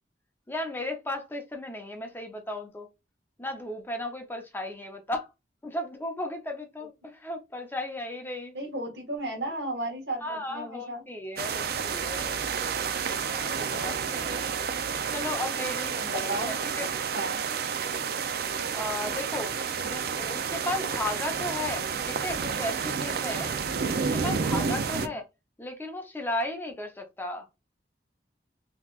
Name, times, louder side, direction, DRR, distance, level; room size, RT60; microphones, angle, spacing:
voice 1, 0.5-2.9 3.4-5.3 5.6-8.6 10.2-12.8 13.3-14.5 15.1-16.9 18.7-19.5 19.8-23.5 23.9-25.3 25.6-27.5, left 1 dB, 10° left, 0.6 m, -35 dB
voice 2, 8.5-11.0 16.0-16.5 17.1-17.4 24.9-25.2, right 1 dB, 75° right, 1.4 m, -34 dB
sound 1, 11.4-25.1, right 6 dB, 60° right, 0.4 m, -30 dB
3.9 x 2.9 x 2.3 m
head